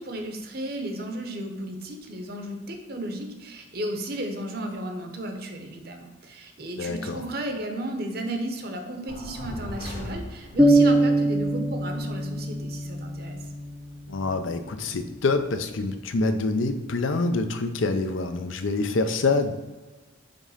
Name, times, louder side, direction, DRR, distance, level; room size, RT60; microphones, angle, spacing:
voice 1, 0.0-13.4, right 1 dB, 50° right, 4 dB, 0.8 m, -34 dB
voice 2, 6.8-7.3 14.1-19.5, left 3 dB, 80° left, 8 dB, 0.6 m, -26 dB
sound 1, 9.1-10.8, left 1 dB, 35° left, 0.8 m, -37 dB
sound 2, 10.6-14.4, right 1 dB, 10° right, 0.5 m, -23 dB
5.3 x 3.6 x 5.5 m, 1.2 s
head